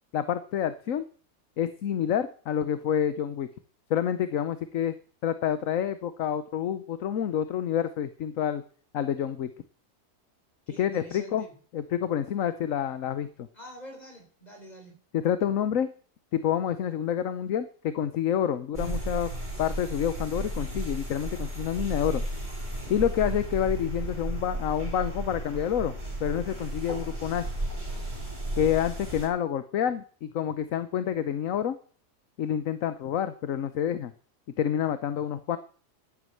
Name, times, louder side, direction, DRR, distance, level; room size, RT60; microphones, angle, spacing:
voice 1, 0.1-1.0 1.6-3.5 3.9-4.9 5.2-8.6 8.9-9.5 10.8-11.4 11.7-13.5 15.1-15.9 16.3-19.3 19.6-22.2 22.9-27.5 28.6-31.8 32.4-34.1 34.6-35.6, left 9 dB, 60° left, 12 dB, 1.1 m, -28 dB
voice 2, 10.7-11.6 13.5-15.0, equal, 25° left, 2 dB, 5.7 m, -47 dB
sound 1, 18.7-29.3, right 1 dB, 25° right, 4.8 m, -34 dB
11.5 x 9.8 x 7.8 m, 0.44 s
omnidirectional pair, 1.7 m